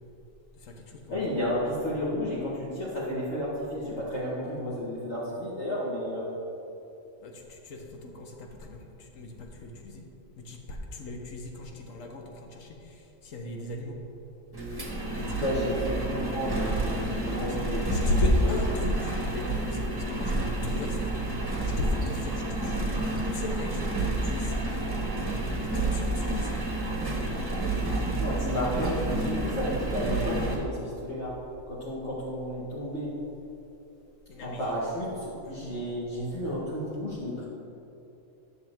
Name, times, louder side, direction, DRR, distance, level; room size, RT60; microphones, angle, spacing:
voice 1, 0.5-1.4 7.2-10.0 10.4-14.0 15.1-15.4 17.9-21.0 21.7-24.6 25.6-26.5 34.3-34.7 35.4-35.8, left 1 dB, 75° left, 2 dB, 1.3 m, -33 dB
voice 2, 1.1-6.3 15.3-16.7 17.0-18.6 28.2-31.4 31.7-33.2 34.4-37.4, equal, 55° left, -10 dB, 1.8 m, -32 dB
Engine, 14.5-30.6, right 2 dB, 20° right, 1.1 m, -30 dB
10.5 x 6.8 x 3.6 m, 2.9 s
omnidirectional pair, 1.4 m